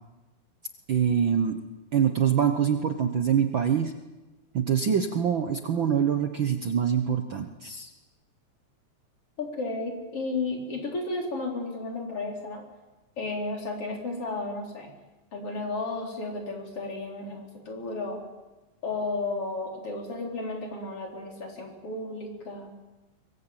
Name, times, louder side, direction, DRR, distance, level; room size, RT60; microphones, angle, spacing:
voice 1, 0.9-1.6 1.9-3.9 4.5-7.9, right 8 dB, 90° right, 6 dB, 1.0 m, -24 dB
voice 2, 9.4-12.7 13.2-14.9 15.3-18.2 18.8-22.7, left 3 dB, 40° left, 1 dB, 5.0 m, -33 dB
24.0 x 21.0 x 8.9 m, 1.1 s
omnidirectional pair, 4.1 m